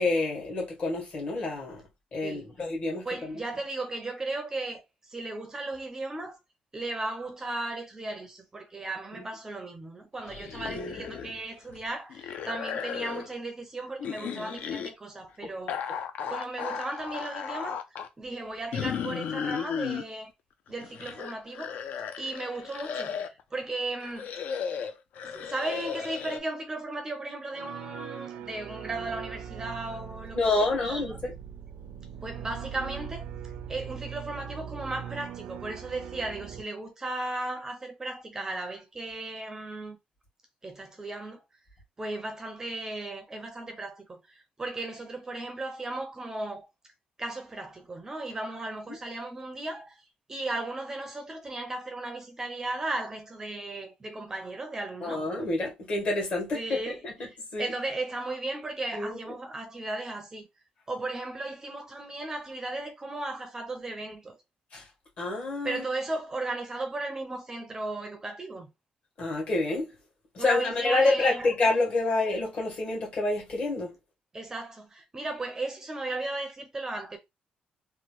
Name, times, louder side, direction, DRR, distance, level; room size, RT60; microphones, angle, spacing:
voice 1, 0.0-1.8 2.1-3.0 10.7-11.0 15.4-15.5 30.3-31.3 55.0-57.1 57.5-57.7 58.9-59.3 64.7-64.8 65.2-65.8 69.2-69.9 70.3-73.9, left 2 dB, 45° left, 1.4 m, -28 dB
voice 2, 3.0-6.4 6.7-15.8 16.3-17.8 18.2-20.3 20.7-21.8 22.2-24.3 25.2-31.2 32.2-33.3 33.7-40.0 40.6-41.4 42.0-46.7 47.2-50.0 50.3-55.3 56.5-60.4 60.9-64.4 65.6-68.7 70.4-71.5 72.1-72.2 74.3-77.2, right 2 dB, 20° right, 0.4 m, -36 dB
sound 1, 10.3-11.4 11.7-13.3 14.0-14.9 15.7-18.1 18.7-20.0 20.7-23.4 24.0-26.4, left 7 dB, 70° left, 0.4 m, -35 dB
sound 2, 27.5-36.6, right 9 dB, 85° right, 0.4 m, -41 dB
2.9 x 2.3 x 3.0 m
cardioid pair, 155°, 3 cm